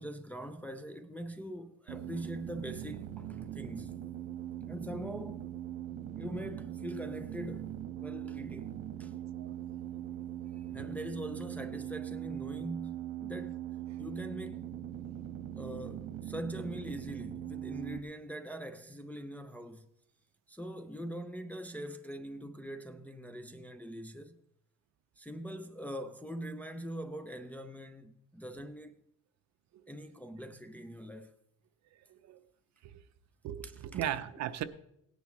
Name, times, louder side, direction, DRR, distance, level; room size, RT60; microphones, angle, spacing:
voice 1, 0.0-3.9 4.7-5.5 6.2-9.1 10.6-13.6 14.0-14.7 15.5-19.9 20.5-24.4 25.2-29.0 29.9-31.3 33.6-34.1, equal, 5° left, 0.4 m, -43 dB
sound 1, 1.9-18.0, right 11 dB, 85° right, 1.1 m, -41 dB
voice 2, 33.4-34.6, right 11 dB, 55° right, 0.7 m, -36 dB
17.5 x 10.5 x 3.1 m
cardioid pair, 155°, 32 cm